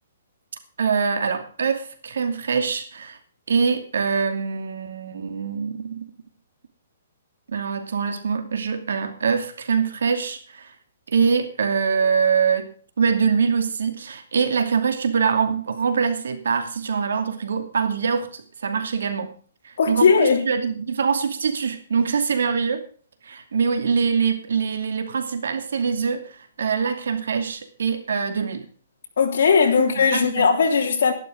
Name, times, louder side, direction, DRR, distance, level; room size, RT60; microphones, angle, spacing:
voice 1, 0.8-3.2 3.5-6.1 7.5-10.7 11.1-19.4 19.6-22.8 23.2-28.7 30.0-30.5, right 6 dB, 85° right, 2.6 m, -24 dB
voice 2, 19.8-20.5 29.2-31.1, left 5 dB, 65° left, 3.3 m, -18 dB
12.0 x 11.5 x 5.1 m
hypercardioid pair, 170°, 0 cm